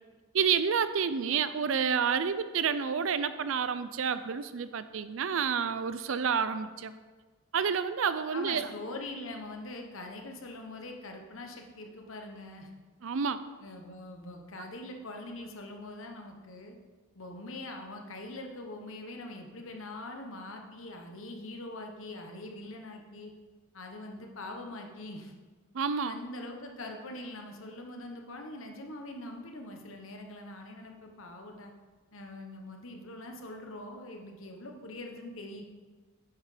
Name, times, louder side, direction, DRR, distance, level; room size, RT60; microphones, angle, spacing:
voice 1, 0.3-6.9 7.5-8.6 13.0-13.4 25.7-26.2, right 6 dB, 65° right, 13 dB, 0.5 m, -29 dB
voice 2, 8.3-12.7 13.6-16.7 17.1-23.3 23.7-25.3 26.0-31.7 32.1-35.6, left 2 dB, 70° left, 3 dB, 1.1 m, -43 dB
9.4 x 5.7 x 5.0 m, 1.4 s
head